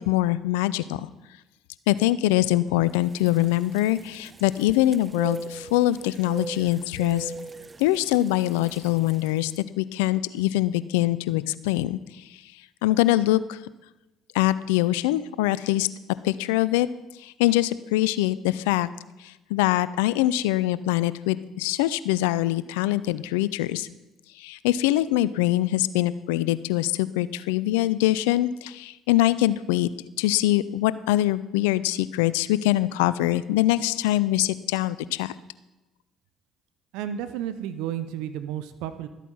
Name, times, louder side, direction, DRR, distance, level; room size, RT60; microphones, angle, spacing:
voice 1, 0.1-1.1 1.9-7.3 7.8-9.5 9.8-12.0 12.8-13.6 14.3-15.9 16.2-16.9 17.2-18.9 19.2-23.9 24.4-29.9 30.2-35.3, left 15 dB, 80° left, 17 dB, 0.4 m, -23 dB
sound 1, 2.9-9.5, right 4 dB, 30° right, 0.5 m, -40 dB
voice 2, 36.9-39.1, right 10 dB, 75° right, 12 dB, 0.7 m, -32 dB
13.0 x 8.2 x 5.6 m, 1.0 s
hypercardioid pair, 55°, 0 cm